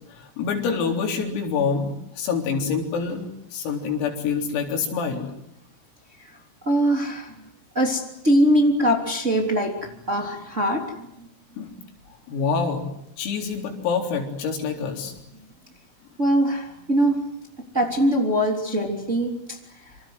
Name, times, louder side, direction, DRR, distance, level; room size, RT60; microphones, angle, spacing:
voice 1, 0.1-1.9 2.2-5.3 11.6-11.8 12.3-12.9 13.2-15.1, left 5 dB, 85° left, 3 dB, 6.5 m, -26 dB
voice 2, 6.6-7.3 7.7-10.9 16.2-17.2 17.7-19.6, equal, 20° right, 2 dB, 2.6 m, -22 dB
26.5 x 26.5 x 8.0 m, 0.77 s
omnidirectional pair, 6.0 m